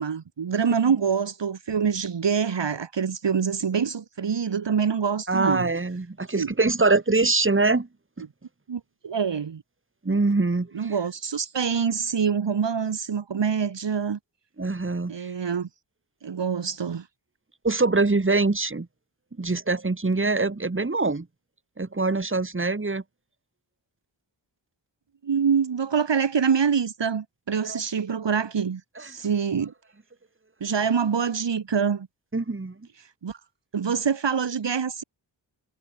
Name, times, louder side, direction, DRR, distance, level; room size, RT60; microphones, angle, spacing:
voice 1, 0.0-5.7 6.4-6.5 8.7-9.6 10.7-14.2 15.1-15.7 16.2-17.0 25.2-29.7 30.6-32.1 33.2-33.4 33.7-35.0, right 6 dB, 65° right, 1.6 m, -25 dB
voice 2, 5.3-7.9 8.2-8.3 10.0-10.9 14.6-15.3 17.6-18.9 19.4-21.3 21.8-23.0 27.7-27.8 29.0-29.1 32.3-32.8, right 3 dB, 25° right, 2.1 m, -24 dB
cardioid pair, 50°, 46 cm